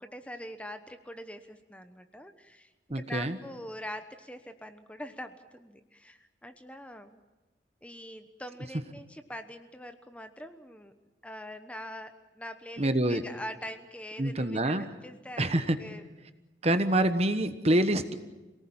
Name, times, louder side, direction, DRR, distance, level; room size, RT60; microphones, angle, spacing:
voice 1, 0.0-7.2 7.8-10.9 11.2-16.0 16.6-16.8, equal, 5° left, 8 dB, 1.0 m, -43 dB
voice 2, 2.9-3.4 12.8-13.2 14.2-14.9 15.4-15.8 16.6-18.1, right 1 dB, 35° right, 10 dB, 1.2 m, -26 dB
27.0 x 18.5 x 8.8 m, 1.1 s
head